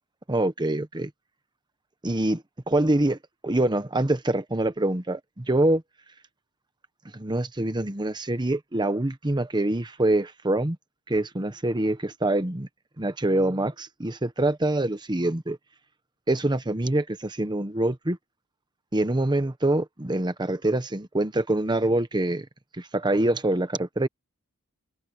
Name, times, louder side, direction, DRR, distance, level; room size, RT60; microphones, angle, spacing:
voice 1, 0.3-1.1 2.0-3.2 3.4-5.8 7.1-10.8 11.1-12.7 13.0-15.6 16.3-18.2 18.9-22.5 22.8-24.1, right 1 dB, 20° right, 1.0 m, -25 dB
head